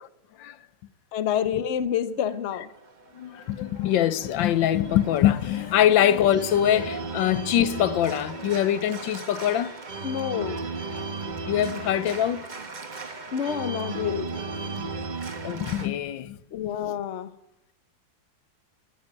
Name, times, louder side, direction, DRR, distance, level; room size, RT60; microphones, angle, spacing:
voice 1, 1.1-2.7 10.0-10.7 13.3-14.4 16.5-17.3, left 9 dB, 50° left, 0.9 m, -28 dB
Organ, 2.7-15.9, right 4 dB, 30° right, 1.1 m, -36 dB
voice 2, 3.1-9.8 11.5-12.5 14.8-14.9 15.4-16.7, left 11 dB, 80° left, 1.4 m, -23 dB
16.0 x 9.0 x 9.7 m
omnidirectional pair, 2.0 m